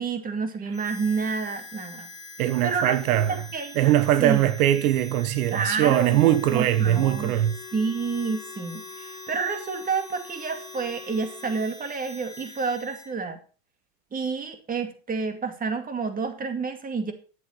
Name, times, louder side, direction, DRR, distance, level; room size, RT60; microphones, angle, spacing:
voice 1, 0.0-2.1 2.6-3.9 4.2-4.5 5.5-7.4 7.7-13.4 14.1-17.1, right 4 dB, 20° right, 2.3 m, -29 dB
Harmonica, 0.7-13.1, left 2 dB, 10° left, 3.8 m, -44 dB
voice 2, 2.4-3.4 3.8-7.6, right 13 dB, 85° right, 1.1 m, -21 dB
Wind instrument woodwind instrument, 5.9-11.7, left 9 dB, 35° left, 2.0 m, -45 dB
11.5 x 8.0 x 5.5 m
supercardioid pair, 120°, 42 cm